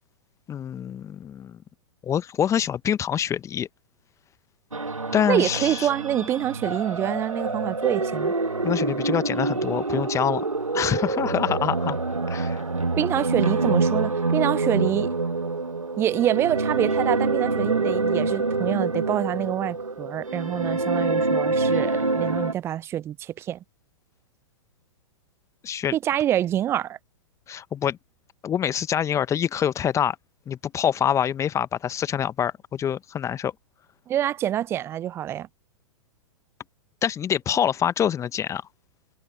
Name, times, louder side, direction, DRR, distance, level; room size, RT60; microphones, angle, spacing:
voice 1, 0.5-1.6 2.0-3.7 5.1-5.9 8.6-10.4 10.7-12.0 12.3-12.6 25.6-25.9 27.5-28.0 28.4-30.2 30.5-33.5 37.0-38.6, left 9 dB, 20° left, 1.2 m, -25 dB
sound 1, 4.7-22.5, right 3 dB, 85° right, 2.2 m, -26 dB
voice 2, 5.3-8.3 13.0-15.1 16.0-23.6 25.9-27.0 34.1-35.5, right 11 dB, 15° right, 0.4 m, -26 dB
figure-of-eight pair, 105°, 17 cm